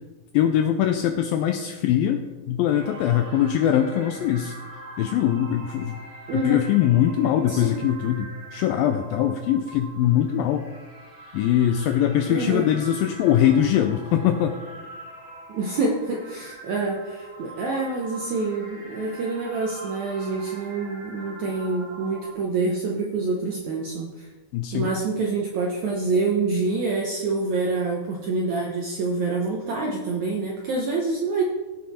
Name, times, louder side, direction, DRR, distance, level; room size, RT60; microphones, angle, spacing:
voice 1, 0.3-4.5 5.0-6.0 6.3-10.7 11.3-14.6 24.5-24.9, left 10 dB, 85° left, 6 dB, 2.1 m, -22 dB
sound 1, 2.7-22.3, right 2 dB, 20° right, 4.2 m, -43 dB
voice 2, 6.3-6.7 7.5-7.7 12.3-12.7 15.5-24.3 24.7-31.4, right 3 dB, 75° right, -1 dB, 1.7 m, -26 dB
16.5 x 6.4 x 4.2 m, 1.2 s
omnidirectional pair, 4.7 m